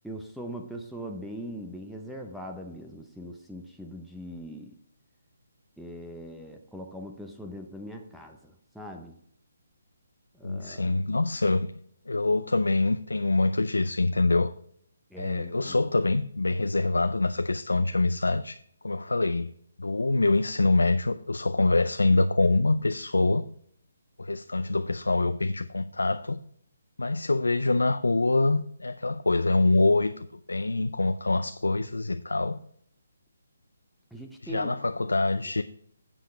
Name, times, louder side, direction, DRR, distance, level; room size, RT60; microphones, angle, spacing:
voice 1, 0.0-4.8 5.8-9.2 10.3-10.9 15.1-15.9 34.1-34.8, equal, ahead, 0.7 m, -41 dB
voice 2, 10.4-11.7 12.1-14.5 15.2-18.6 18.8-19.5 19.8-23.4 24.2-26.4 27.0-32.6 34.4-35.6, left 2 dB, 85° left, 0.4 m, -25 dB
10.0 x 7.8 x 3.3 m
figure-of-eight pair, 145°, 0 cm